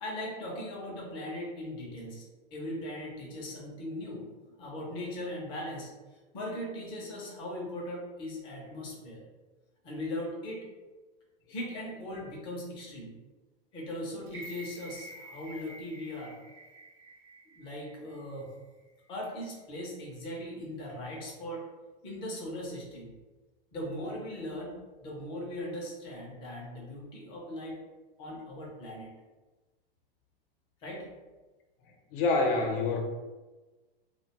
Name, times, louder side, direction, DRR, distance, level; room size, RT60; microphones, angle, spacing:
voice 1, 0.0-2.2 2.5-4.3 4.6-9.2 9.8-10.6 11.5-13.1 13.7-16.4 17.5-18.5 19.1-21.6 22.0-23.1 23.7-27.8 28.2-29.1 30.8-31.1, left 1 dB, 20° left, -3 dB, 0.4 m, -39 dB
sound 1, 14.3-18.4 18.8-18.9, right 1 dB, 65° right, 0.8 m, -49 dB
voice 2, 32.1-33.0, left 3 dB, 65° left, 2 dB, 0.6 m, -26 dB
2.5 x 2.1 x 2.8 m, 1.2 s
supercardioid pair, 160°, 29 cm